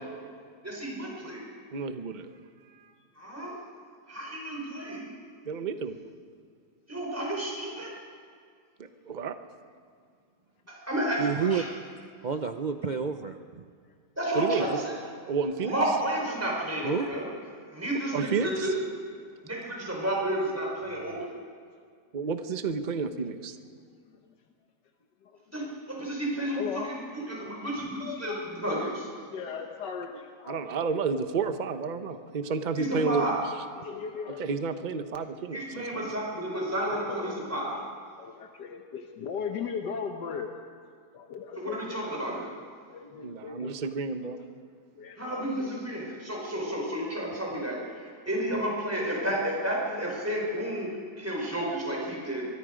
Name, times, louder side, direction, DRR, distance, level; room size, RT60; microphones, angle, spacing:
voice 1, 0.6-1.5 3.2-3.6 4.1-5.1 6.9-7.9 10.7-11.7 14.2-15.0 15.6-17.3 17.7-18.7 19.4-21.4 25.5-29.1 32.8-33.4 35.5-37.8 41.5-42.5 45.2-52.5, right 1 dB, 10° right, -2 dB, 4.5 m, -31 dB
voice 2, 1.7-2.3 5.5-6.0 8.8-9.4 14.3-14.8 15.3-15.7 17.9-18.7 22.1-23.6 30.5-33.3 34.4-36.0 43.2-44.4, right 5 dB, 35° right, 9 dB, 0.9 m, -31 dB
voice 3, 11.2-11.7 12.2-13.7 16.8-17.1 21.1-21.2, right 6 dB, 75° right, 6 dB, 0.4 m, -30 dB
voice 4, 26.6-26.9 28.0-28.5 29.3-30.7 33.8-34.6 35.2-35.3 36.9-37.2 38.2-40.5 41.1-42.0 42.3-42.4 42.9-43.7 44.9-45.3 47.2-47.3 51.0-51.1, left 6 dB, 85° left, 3 dB, 1.8 m, -37 dB
25.5 x 22.5 x 5.1 m, 2.1 s
omnidirectional pair, 1.8 m